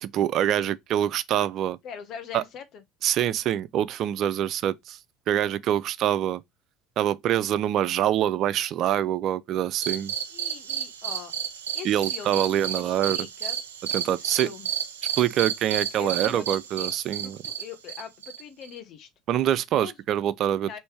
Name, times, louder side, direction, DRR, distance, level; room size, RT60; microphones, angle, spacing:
voice 1, 0.0-1.8 2.3-2.4 3.0-5.0 5.3-6.4 7.0-10.1 11.8-13.2 13.9-14.5 15.2-17.4 19.3-20.8, right 11 dB, 55° right, 0.4 m, -25 dB
voice 2, 1.8-2.8 10.3-11.3 11.7-13.6 14.0-14.7 16.0-16.9 17.2-19.1 19.8-20.0 20.6-20.8, left 8 dB, 55° left, 1.0 m, -42 dB
sound 1, 9.8-18.8, right 8 dB, 85° right, 0.7 m, -32 dB
3.2 x 3.1 x 4.6 m
hypercardioid pair, 80°, 0 cm